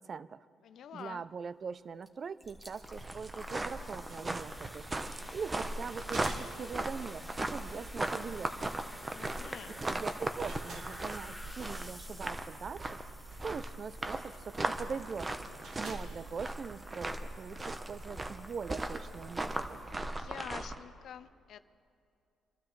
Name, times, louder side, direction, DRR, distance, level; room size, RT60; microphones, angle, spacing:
voice 1, 0.0-0.5 0.9-4.9 5.3-8.7 9.9-13.0 13.4-15.3 15.8-19.8, right 5 dB, 45° right, 17 dB, 0.4 m, -42 dB
voice 2, 0.6-1.3 9.1-9.7 20.1-21.6, left 9 dB, 70° left, 14 dB, 0.5 m, -47 dB
sound 1, 2.0-2.1 2.4-20.1, equal, 5° right, 1.7 m, -52 dB
sound 2, 2.4-20.8, right 2 dB, 25° right, 0.9 m, -38 dB
sound 3, 3.9-17.3, right 3 dB, 65° right, 1.8 m, -55 dB
26.0 x 12.5 x 3.2 m, 2.4 s
cardioid pair, 90°, 0 cm